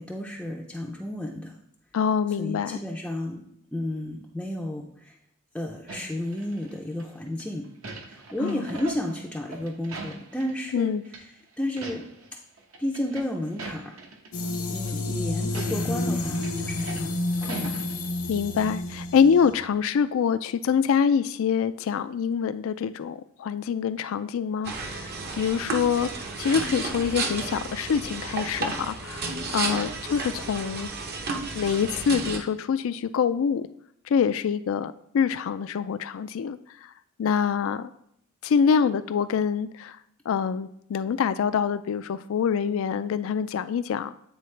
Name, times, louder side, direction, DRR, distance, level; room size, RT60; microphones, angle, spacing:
voice 1, 0.0-1.5 2.4-3.4 3.7-5.2 5.5-7.7 8.1-10.9 11.6-12.1 12.8-14.0 14.7-17.2 17.4-17.8, left 1 dB, 5° left, -2 dB, 0.4 m, -32 dB
voice 2, 1.9-2.8 8.4-8.6 10.7-11.0 18.3-25.1 25.4-26.1 26.4-30.9 31.6-33.7 34.1-36.6 37.2-37.9 38.4-40.0 40.3-44.1, left 7 dB, 70° left, 13 dB, 0.3 m, -25 dB
sound 1, 5.9-7.0 7.4-10.8 11.1-11.2 11.6-12.3 12.6-14.3 14.8-14.9 15.4-18.4 18.7-18.8, right 3 dB, 75° right, 0.9 m, -41 dB
sound 2, 14.3-19.5, left 2 dB, 85° left, 0.9 m, -30 dB
sound 3, 24.6-32.4, right 3 dB, 50° right, 0.7 m, -32 dB
8.9 x 3.7 x 3.2 m, 0.72 s
head